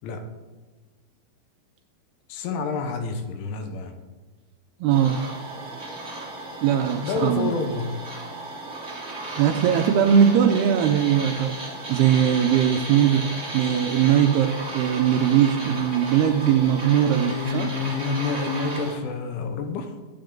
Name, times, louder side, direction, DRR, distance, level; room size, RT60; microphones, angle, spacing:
voice 1, 2.3-3.9 7.0-8.0 17.1-20.0, left 4 dB, 90° left, 6 dB, 3.6 m, -28 dB
voice 2, 4.8-5.2 6.6-7.5 9.4-11.6 11.9-17.7, right 9 dB, 80° right, 5 dB, 2.4 m, -20 dB
sound 1, 4.9-18.9, right 2 dB, 20° right, 2.6 m, -35 dB
23.0 x 8.7 x 3.9 m, 1.3 s
omnidirectional pair, 5.3 m